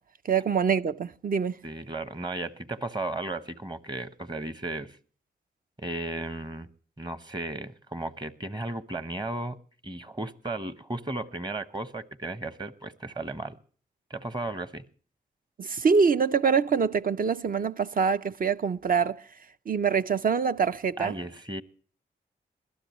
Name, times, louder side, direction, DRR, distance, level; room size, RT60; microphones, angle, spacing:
voice 1, 0.2-1.6 15.6-19.2 19.7-21.2, right 6 dB, 45° right, 0.6 m, -25 dB
voice 2, 1.6-5.0 5.8-6.7 7.0-9.6 9.8-13.5 14.1-14.8 21.0-21.6, right 2 dB, 20° right, 1.0 m, -35 dB
21.0 x 12.0 x 3.1 m
supercardioid pair, 45°, 20 cm